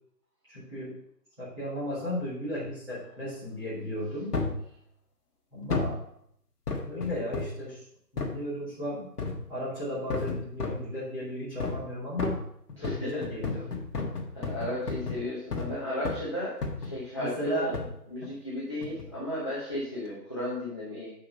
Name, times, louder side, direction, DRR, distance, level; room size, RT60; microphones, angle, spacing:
voice 1, 0.5-0.9 1.4-4.3 5.5-6.0 6.8-7.8 8.1-9.0 9.5-12.4 12.8-13.7 14.0-14.3 17.2-17.8 18.2-18.3, equal, 5° right, -14 dB, 1.8 m, -35 dB
kicking medium-box, 4.3-4.6 5.7-6.0 6.7-7.6 8.2-8.4 9.2-9.5 10.1-10.9 11.6-11.9 12.2-15.8 16.0-16.3 16.6-17.0 17.7-18.0 18.8-19.1 19.7-19.8, left 3 dB, 65° left, 1.7 m, -33 dB
voice 2, 12.8-13.2 14.3-17.8 18.1-21.1, left 1 dB, 20° left, -9 dB, 0.9 m, -34 dB
6.9 x 5.6 x 5.2 m, 0.71 s
hypercardioid pair, 175°, 50 cm